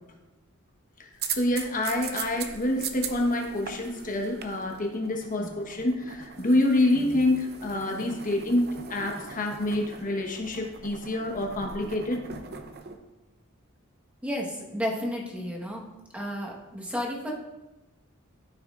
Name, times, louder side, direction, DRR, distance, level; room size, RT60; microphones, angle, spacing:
voice 1, 1.0-12.6, left 1 dB, 40° left, 2 dB, 1.2 m, -27 dB
sound 1, 1.1-13.0, right 6 dB, 50° right, 0.6 m, -40 dB
voice 2, 14.2-15.8 16.1-17.3, equal, 5° right, -2 dB, 1.3 m, -32 dB
13.0 x 6.1 x 2.5 m, 1.0 s
head